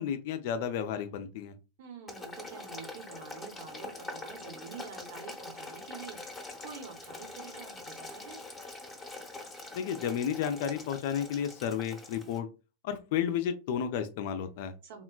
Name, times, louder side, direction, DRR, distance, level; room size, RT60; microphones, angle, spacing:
voice 1, 0.0-1.5 9.7-12.5 12.8-14.7, left 8 dB, 50° left, 10 dB, 0.4 m, -32 dB
voice 2, 1.8-6.2 6.6-8.4 14.8-15.0, right 6 dB, 55° right, 4 dB, 0.8 m, -47 dB
Boiling, 2.1-12.4, left 2 dB, 15° left, 0.8 m, -44 dB
3.6 x 2.1 x 2.3 m, 0.30 s
figure-of-eight pair, 90°, 0 cm